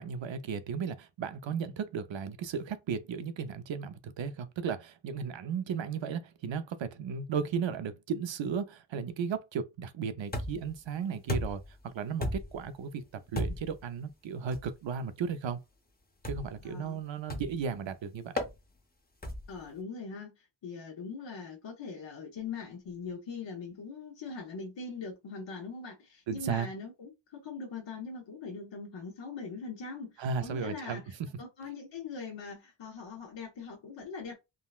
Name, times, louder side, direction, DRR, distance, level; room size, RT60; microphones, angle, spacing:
voice 1, 0.0-15.6 16.2-18.3 26.3-26.7 30.2-31.0, right 6 dB, 70° right, 0.6 m, -35 dB
sound 1, 10.3-10.8 11.3-11.7 12.2-12.7 13.4-13.8 14.5-14.7 16.2-16.6 17.3-17.7 18.4-18.6 19.2-19.6, left 1 dB, 20° left, 0.7 m, -34 dB
voice 2, 16.6-17.0 19.5-34.4, left 4 dB, 65° left, 0.9 m, -42 dB
3.8 x 2.1 x 2.4 m
wide cardioid pair, 75°, 47 cm